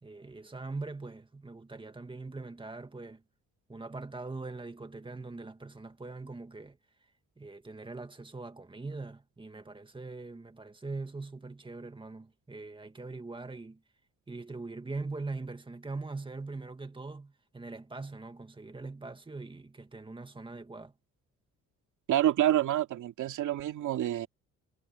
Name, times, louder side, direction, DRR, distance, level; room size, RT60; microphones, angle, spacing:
voice 1, 0.0-3.2 3.7-6.8 7.4-13.8 14.3-20.9, right 3 dB, 15° right, 2.1 m, -42 dB
voice 2, 22.1-24.3, right 12 dB, 75° right, 2.6 m, -27 dB
cardioid pair, 105°, 31 cm